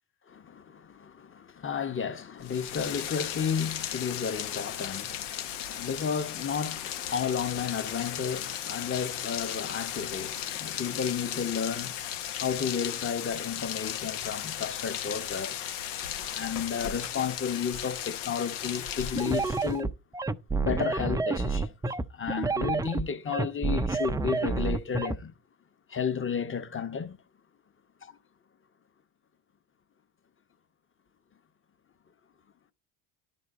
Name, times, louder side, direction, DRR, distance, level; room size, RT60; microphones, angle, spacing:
voice 1, 0.3-12.0 12.4-15.7 16.2-19.9 20.6-21.7 22.1-25.3 25.9-27.2 28.0-28.2, left 7 dB, 25° left, 1.0 m, -32 dB
Rain, 2.4-19.8, left 10 dB, 85° left, 1.2 m, -36 dB
sound 1, 19.2-25.2, right 3 dB, 10° right, 0.4 m, -29 dB
11.0 x 4.1 x 4.8 m
supercardioid pair, 85°, 48 cm